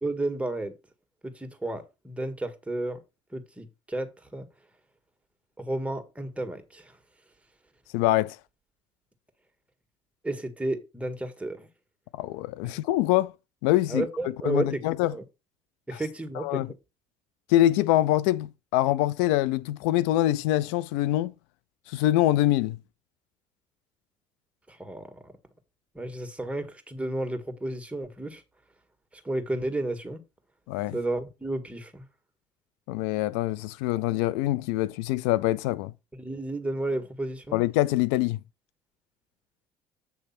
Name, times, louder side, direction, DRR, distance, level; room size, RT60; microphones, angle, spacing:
voice 1, 0.0-0.7 1.2-3.0 3.3-4.5 5.6-6.9 10.2-11.7 13.9-14.8 15.1-15.2 15.9-16.6 24.7-25.3 25.9-28.4 29.2-30.2 30.9-32.0 36.2-37.6, right 2 dB, 10° right, 1.7 m, -32 dB
voice 2, 7.9-8.4 12.1-13.3 13.6-14.1 14.4-15.1 15.9-16.0 16.4-16.7 17.5-21.3 21.9-22.8 30.7-31.0 32.9-35.9 37.5-38.4, left 15 dB, 90° left, 0.4 m, -24 dB
8.3 x 3.3 x 5.8 m
supercardioid pair, 75°, 14 cm